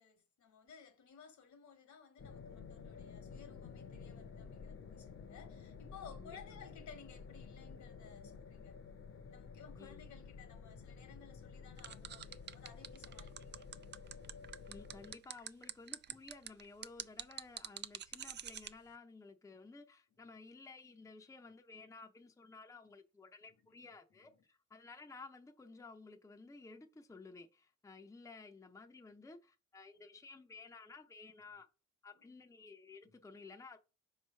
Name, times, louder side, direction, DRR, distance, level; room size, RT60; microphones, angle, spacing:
voice 1, 0.0-8.8 9.3-13.8 33.1-33.2, left 6 dB, 70° left, 1.4 m, -57 dB
sound 1, 2.2-15.2, left 5 dB, 45° left, 0.9 m, -52 dB
voice 2, 6.1-6.8 9.8-10.0 14.7-31.7 32.0-33.8, left 3 dB, 10° left, 0.7 m, -55 dB
sound 2, 11.8-18.7, right 9 dB, 35° right, 0.4 m, -45 dB
5.8 x 3.2 x 5.5 m
cardioid pair, 90°, 30 cm